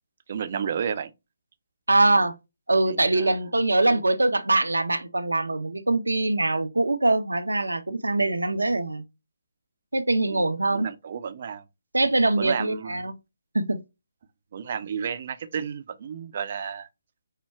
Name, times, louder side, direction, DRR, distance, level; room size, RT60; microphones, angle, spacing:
voice 1, 0.3-1.1 2.9-3.4 3.9-4.0 10.3-10.4 10.7-11.6 12.0-13.1 14.5-16.9, right 7 dB, 50° right, 0.6 m, -32 dB
voice 2, 1.9-2.3 2.7-9.0 9.9-10.9 11.9-13.1 13.5-13.8, right 2 dB, 85° right, 0.7 m, -23 dB
5.5 x 2.2 x 3.4 m
figure-of-eight pair, 145°, 0 cm